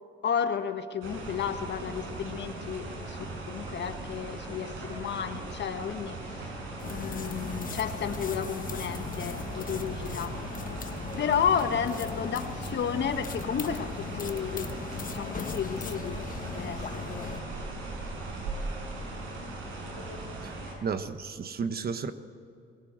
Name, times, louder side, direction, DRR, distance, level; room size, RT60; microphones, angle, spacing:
voice 1, 0.2-10.4 11.2-16.2 16.5-17.3, left 7 dB, 60° left, 8 dB, 1.5 m, -32 dB
sound 1, 1.0-20.7, right 2 dB, 90° right, 5.9 m, -39 dB
sound 2, 6.8-17.4, left 6 dB, 45° left, 1.3 m, -39 dB
voice 2, 20.8-22.1, right 5 dB, 50° right, 10 dB, 1.4 m, -32 dB
20.5 x 17.5 x 7.6 m, 2.5 s
cardioid pair, 90°, 20 cm